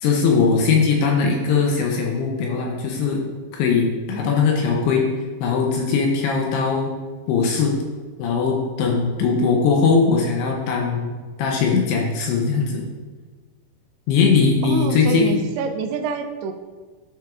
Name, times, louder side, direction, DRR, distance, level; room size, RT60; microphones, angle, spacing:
voice 1, 0.0-3.2 3.5-5.0 5.4-6.9 7.3-7.8 8.2-12.8 14.1-15.3, left 5 dB, 80° left, 0 dB, 2.6 m, -20 dB
voice 2, 1.1-1.7 14.6-16.5, right 4 dB, 80° right, 6 dB, 2.4 m, -27 dB
11.5 x 6.2 x 2.5 m, 1.4 s
omnidirectional pair, 5.2 m